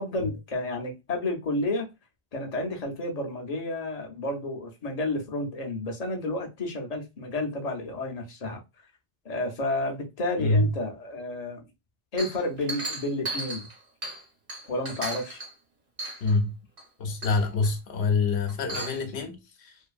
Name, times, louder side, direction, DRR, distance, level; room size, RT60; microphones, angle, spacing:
voice 1, 0.0-1.9 2.3-8.6 9.2-11.6 12.1-13.7 14.7-15.4, left 2 dB, 45° left, 0.6 m, -31 dB
voice 2, 10.4-10.7 16.2-16.5 17.0-19.8, left 3 dB, 80° left, 0.9 m, -26 dB
Chink clink, 12.2-14.2 14.5-15.5 16.0-16.4 16.8-16.9 17.2-17.7 18.5-19.0, right 2 dB, 60° right, 1.1 m, -36 dB
2.6 x 2.5 x 2.3 m
omnidirectional pair, 1.1 m